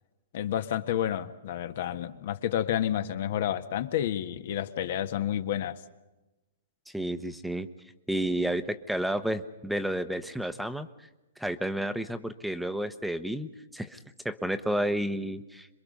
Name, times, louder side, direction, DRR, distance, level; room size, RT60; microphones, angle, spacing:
voice 1, 0.3-5.8, left 11 dB, 60° left, 9 dB, 1.5 m, -30 dB
voice 2, 6.9-7.7 8.1-10.9 11.4-14.0 14.2-15.7, right 1 dB, ahead, 11 dB, 1.0 m, -31 dB
27.0 x 22.5 x 5.4 m, 1.0 s
hypercardioid pair, 135°, 0 cm